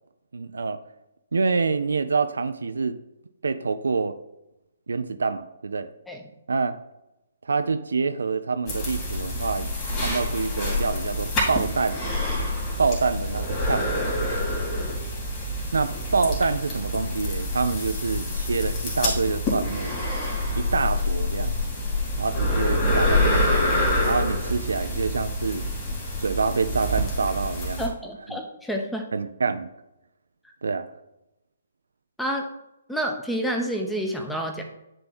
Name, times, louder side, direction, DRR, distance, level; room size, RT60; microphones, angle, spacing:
voice 1, 0.3-0.8 1.3-3.0 3.4-4.2 4.9-5.9 6.5-6.8 7.4-12.0 12.8-14.1 15.7-20.0 20.6-21.5 22.2-25.6 26.2-27.8 28.3-28.4 29.1-29.7 30.6-30.9, right 4 dB, 70° right, 10 dB, 0.5 m, -26 dB
sound 1, 8.7-27.9, left 1 dB, 25° left, 2.7 m, -26 dB
voice 2, 27.8-29.1 32.2-32.5 32.9-34.6, equal, 5° left, 2 dB, 0.9 m, -29 dB
9.9 x 3.4 x 4.2 m, 0.91 s
figure-of-eight pair, 130°, 0 cm